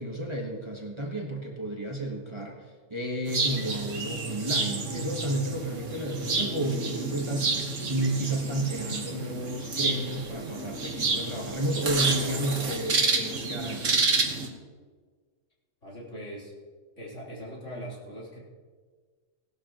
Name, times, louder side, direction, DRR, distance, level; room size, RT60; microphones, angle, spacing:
voice 1, 0.0-7.5 7.9-13.9, right 1 dB, 20° right, -1 dB, 1.5 m, -32 dB
sound 1, 3.3-14.5, right 3 dB, 70° right, 1.8 m, -29 dB
voice 2, 15.8-16.5 17.0-18.4, equal, 65° left, -5 dB, 4.1 m, -40 dB
18.5 x 12.0 x 3.0 m, 1.5 s
omnidirectional pair, 1.4 m